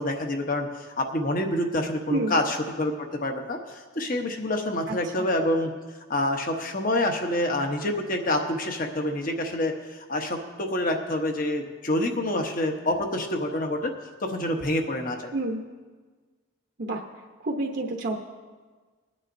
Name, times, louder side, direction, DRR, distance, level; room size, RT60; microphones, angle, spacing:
voice 1, 0.0-5.7 6.1-13.9 14.2-15.3, left 1 dB, 45° left, 4 dB, 1.0 m, -27 dB
voice 2, 4.9-5.2 15.3-15.6 16.8-17.0 17.4-18.2, right 2 dB, 55° right, 0 dB, 0.9 m, -29 dB
21.5 x 9.7 x 2.7 m, 1.4 s
head